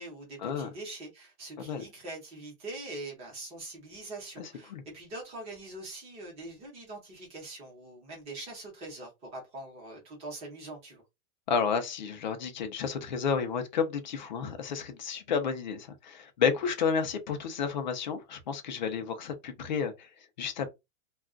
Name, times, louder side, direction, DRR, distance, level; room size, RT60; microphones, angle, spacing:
voice 1, 0.0-11.0, right 2 dB, 15° right, 0.8 m, -43 dB
voice 2, 4.4-4.8 11.5-20.1 20.4-20.7, left 6 dB, 35° left, 0.4 m, -31 dB
2.3 x 2.3 x 3.6 m
supercardioid pair, 170°, 43 cm